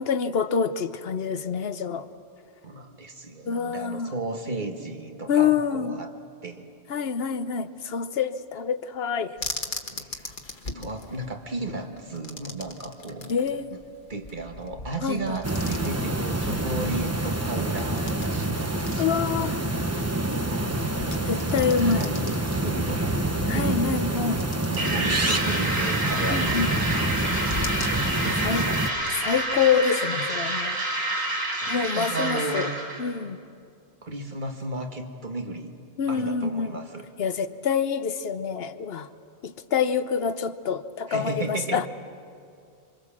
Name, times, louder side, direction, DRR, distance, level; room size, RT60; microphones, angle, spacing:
voice 1, 0.0-2.1 3.4-4.1 5.3-6.0 6.9-9.4 13.3-13.8 15.0-15.4 19.0-19.7 21.2-22.1 23.5-24.4 26.3-26.7 28.4-28.7 29.2-30.8 31.7-32.7 33.0-33.4 36.0-36.8 37.2-39.1 39.4-41.9, left 6 dB, 70° left, 12 dB, 1.1 m, -26 dB
voice 2, 2.6-6.1 6.4-6.6 9.9-10.4 10.7-13.4 13.7-13.8 14.1-19.7 19.9-23.1 23.5-24.3 24.7-26.8 28.2-28.8 31.6-32.7 34.0-35.7 36.1-37.0 41.1-41.8, right 3 dB, 45° right, 4 dB, 1.8 m, -35 dB
sound 1, 9.4-29.2, left 2 dB, 50° left, 1.6 m, -41 dB
sound 2, 15.4-28.9, right 1 dB, 15° right, 0.9 m, -27 dB
sound 3, 24.8-33.0, right 2 dB, 80° right, 4.7 m, -28 dB
26.5 x 25.5 x 7.3 m, 2.4 s
omnidirectional pair, 1.1 m